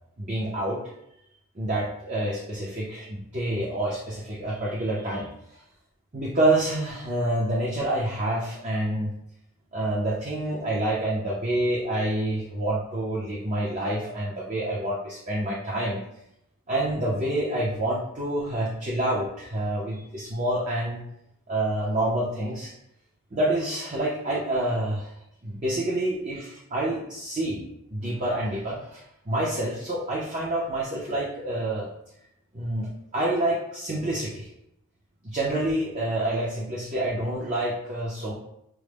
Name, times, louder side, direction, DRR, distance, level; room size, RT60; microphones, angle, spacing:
voice 1, 0.2-0.8 1.6-5.3 6.1-9.1 9.7-16.0 16.7-21.0 21.5-22.7 23.3-25.1 25.4-27.6 27.9-31.9 32.5-34.5 35.2-38.3, right 1 dB, 30° right, -5 dB, 0.6 m, -27 dB
6.1 x 2.1 x 3.4 m, 0.79 s
head